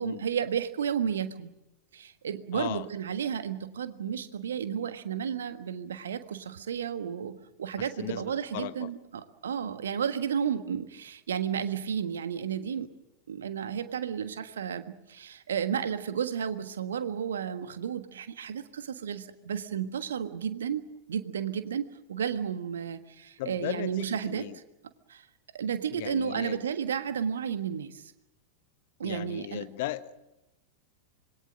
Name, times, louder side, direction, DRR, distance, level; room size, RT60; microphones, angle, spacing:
voice 1, 0.0-1.5 1.9-12.9 13.3-24.6 25.1-25.2 25.5-28.1 29.0-29.7, right 8 dB, 65° right, 10 dB, 1.5 m, -32 dB
voice 2, 2.5-2.8 8.0-8.9 23.4-24.6 25.9-26.7 29.0-30.2, left 15 dB, 50° left, 12 dB, 1.2 m, -37 dB
26.0 x 22.0 x 6.3 m, 0.93 s
figure-of-eight pair, 90°, 0 cm